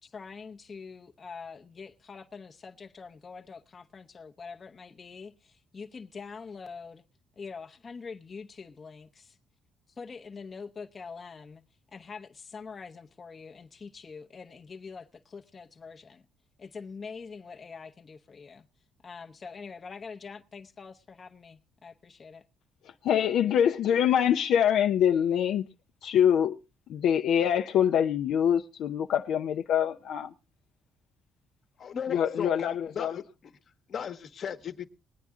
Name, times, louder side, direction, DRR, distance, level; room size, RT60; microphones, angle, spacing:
voice 1, 0.0-7.0 7.4-9.4 9.9-11.6 11.9-16.2 16.6-18.7 19.0-22.5, left 5 dB, 35° left, 0.8 m, -44 dB
voice 2, 23.1-25.6 26.0-26.6 26.9-30.3 32.1-33.2, left 9 dB, 70° left, 0.6 m, -24 dB
voice 3, 31.8-33.2 33.9-34.9, left 8 dB, 50° left, 1.2 m, -36 dB
20.5 x 9.3 x 3.7 m
cardioid pair, 110°, 0 cm